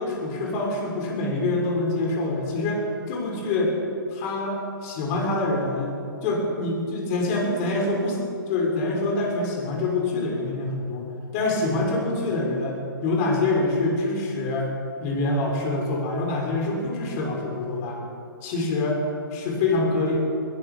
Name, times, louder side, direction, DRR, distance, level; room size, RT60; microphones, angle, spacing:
voice 1, 0.0-3.7 4.1-5.9 6.2-8.2 8.5-14.7 15.0-18.0 18.4-19.0 19.3-20.2, left 2 dB, 40° left, -1 dB, 6.2 m, -25 dB
20.5 x 17.5 x 7.2 m, 2.4 s
hypercardioid pair, 135°, 12 cm